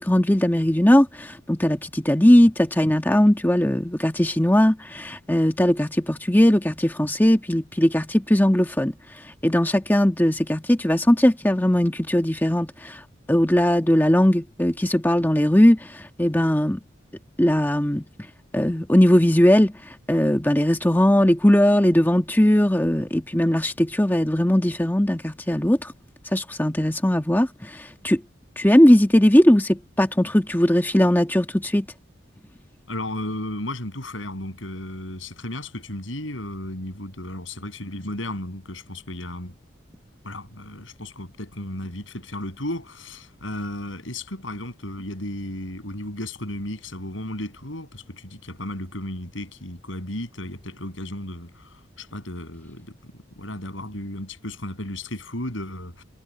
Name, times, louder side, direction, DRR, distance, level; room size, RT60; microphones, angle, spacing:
voice 1, 0.0-8.9 9.4-13.0 13.3-16.8 17.4-18.0 18.5-25.9 26.3-28.2 28.6-31.9, equal, 10° left, 1.3 m, -19 dB
voice 2, 32.9-39.5 40.2-56.0, left 1 dB, 90° left, 7.8 m, -34 dB
head